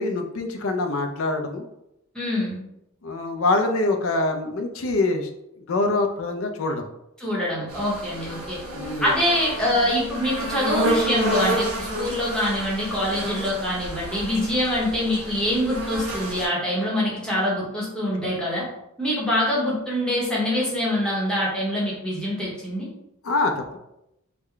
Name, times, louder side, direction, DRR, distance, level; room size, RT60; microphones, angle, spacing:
voice 1, 0.0-1.6 3.0-5.3 5.6-6.8 8.7-9.2 23.2-23.8, left 2 dB, 65° left, 5 dB, 0.5 m, -24 dB
voice 2, 2.1-2.6 7.2-8.6 9.0-18.7 19.0-22.9, left 1 dB, 5° left, -6 dB, 0.9 m, -24 dB
sound 1, 7.7-16.4, right 1 dB, 85° right, 1.3 m, -29 dB
3.7 x 2.1 x 3.3 m, 0.84 s
head